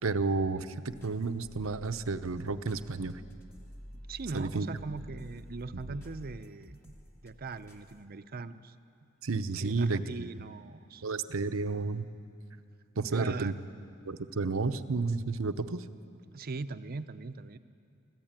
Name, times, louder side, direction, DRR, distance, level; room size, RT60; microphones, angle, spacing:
voice 1, 0.0-3.2 4.3-4.7 5.7-6.0 9.2-10.3 11.0-12.0 13.0-13.5 14.1-15.8, right 3 dB, 85° right, 9 dB, 0.8 m, -31 dB
sound 1, 0.9-8.1, equal, 10° left, 1.5 m, -50 dB
voice 2, 3.9-6.9 7.2-8.7 9.6-11.0 13.1-13.5 16.3-17.6, right 3 dB, 45° right, 11 dB, 0.6 m, -40 dB
25.0 x 14.5 x 8.9 m, 2.6 s
head